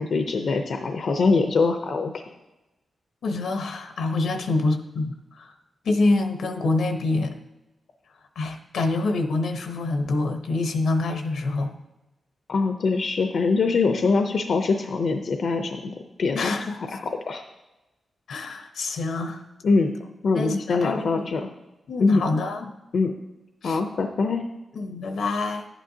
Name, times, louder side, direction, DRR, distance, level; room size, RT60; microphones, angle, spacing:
voice 1, 0.0-2.3 12.5-17.4 19.6-19.9 20.2-21.4 22.0-22.2 22.9-23.1 23.6-24.4, left 4 dB, 65° left, 5 dB, 0.6 m, -23 dB
voice 2, 3.2-5.5 5.8-7.4 8.4-11.7 16.3-16.7 18.3-19.4 20.3-21.3 21.9-22.7 23.6-23.8 24.7-25.7, left 2 dB, 85° left, 6 dB, 0.9 m, -26 dB
10.5 x 9.0 x 2.8 m, 0.99 s
wide cardioid pair, 110°, 0 cm